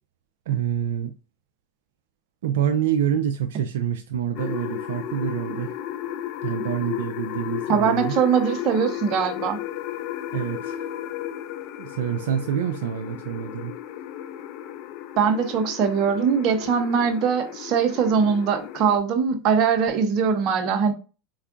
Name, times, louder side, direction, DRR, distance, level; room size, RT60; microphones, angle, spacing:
voice 1, 0.5-1.1 2.4-5.7 6.4-8.2 10.3-10.9 11.8-13.7, right 9 dB, 75° right, 0.3 m, -27 dB
sound 1, 4.3-19.0, left 11 dB, 55° left, 0.4 m, -34 dB
voice 2, 7.7-9.6 15.2-20.9, right 6 dB, 50° right, 0.8 m, -21 dB
4.4 x 2.3 x 2.5 m
hypercardioid pair, 105°, 0 cm